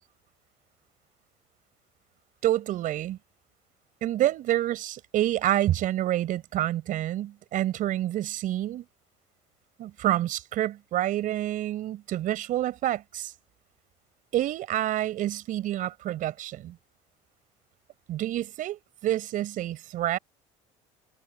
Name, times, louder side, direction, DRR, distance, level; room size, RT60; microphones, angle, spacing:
voice 1, 2.4-3.2 4.0-8.8 9.8-13.3 14.3-16.8 18.1-20.2, right 13 dB, 60° right, 4.6 m, -28 dB
supercardioid pair, 85°, 16 cm